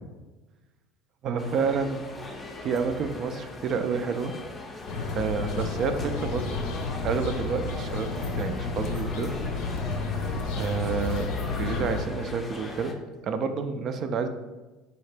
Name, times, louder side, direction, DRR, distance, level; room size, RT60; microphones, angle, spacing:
voice 1, 1.2-2.0 2.6-4.3 5.1-6.5 7.0-9.3 10.5-11.3 11.6-12.9 13.2-14.3, right 5 dB, 45° right, 8 dB, 0.3 m, -29 dB
sound 1, 1.4-12.9, left 2 dB, 20° left, 0.5 m, -40 dB
sound 2, 4.9-12.0, left 4 dB, 80° left, 0.6 m, -31 dB
4.2 x 2.8 x 3.3 m, 1.2 s
supercardioid pair, 115°, 0 cm